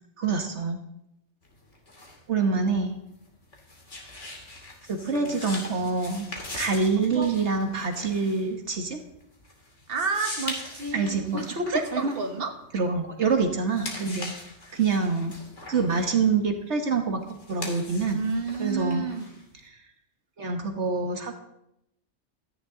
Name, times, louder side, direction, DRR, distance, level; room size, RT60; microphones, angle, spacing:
voice 1, 0.2-0.8 2.3-3.0 4.9-6.3 6.6-9.0 10.9-12.1 12.7-14.3 14.7-15.3 15.7-18.2 18.6-19.1 20.4-21.4, right 4 dB, 70° right, 5 dB, 1.6 m, -26 dB
sound 1, 1.4-13.2 13.6-19.7, left 2 dB, 75° left, 3.1 m, -41 dB
voice 2, 7.0-7.3 9.9-12.6 18.1-19.4, right 4 dB, 50° right, 5 dB, 1.6 m, -31 dB
16.5 x 13.5 x 3.8 m, 0.82 s
omnidirectional pair, 1.2 m